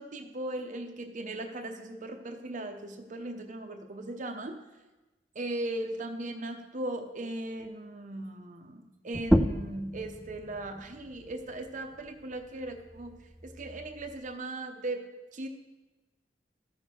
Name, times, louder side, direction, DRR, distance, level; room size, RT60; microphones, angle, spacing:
voice 1, 0.0-4.6 5.3-13.2 13.4-15.5, right 1 dB, 45° right, 4 dB, 0.8 m, -38 dB
sound 1, 9.1-14.3, equal, ahead, 0.3 m, -32 dB
13.5 x 6.3 x 4.3 m, 1.1 s
head